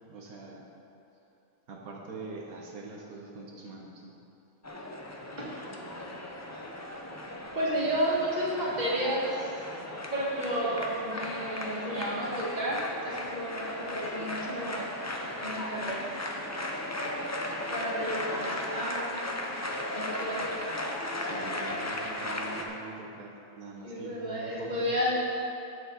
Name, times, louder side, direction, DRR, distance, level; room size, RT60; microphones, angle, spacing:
voice 1, 0.1-0.6 1.7-4.1 16.9-17.2 21.2-25.0, right 3 dB, 85° right, -1 dB, 1.5 m, -43 dB
sound 1, 4.6-22.6, left 1 dB, 20° left, 0.5 m, -36 dB
voice 2, 7.6-9.6 10.1-14.9 15.4-16.1 17.7-19.4 19.9-20.6 23.8-25.2, equal, 30° right, -6 dB, 2.1 m, -32 dB
15.5 x 6.8 x 4.0 m, 2.9 s
omnidirectional pair, 1.5 m